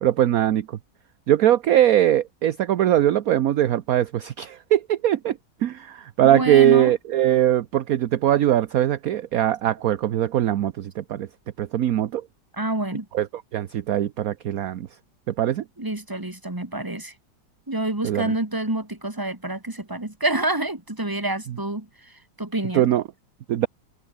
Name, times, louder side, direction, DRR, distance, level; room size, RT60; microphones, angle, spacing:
voice 1, 0.0-0.8 1.3-11.3 11.6-12.2 13.1-13.3 13.5-14.9 15.3-15.6 18.0-18.3 22.7-23.0 23.5-23.7, right 11 dB, 60° right, 1.1 m, -21 dB
voice 2, 6.3-6.9 12.5-13.1 15.8-17.1 17.7-22.9, right 2 dB, 10° right, 2.6 m, -27 dB
omnidirectional pair, 1.9 m